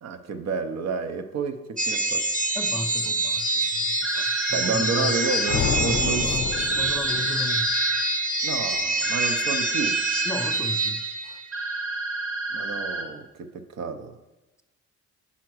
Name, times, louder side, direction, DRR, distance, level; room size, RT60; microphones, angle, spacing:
voice 1, 0.0-2.3 4.5-6.4 8.4-10.0 12.5-14.1, right 5 dB, 60° right, 8 dB, 0.8 m, -30 dB
sound 1, 1.8-11.6, right 2 dB, 25° right, 0.9 m, -26 dB
voice 2, 2.6-3.5 4.1-5.2 5.7-7.7 10.3-11.4, left 1 dB, 10° left, 9 dB, 0.3 m, -34 dB
sound 2, 4.0-5.5 6.5-8.0 9.0-10.5 11.5-13.0, right 3 dB, 45° right, 1.2 m, -31 dB
sound 3, 5.5-7.7, left 8 dB, 60° left, 0.6 m, -29 dB
5.8 x 4.8 x 6.2 m, 1.1 s
cardioid pair, 90°, 30 cm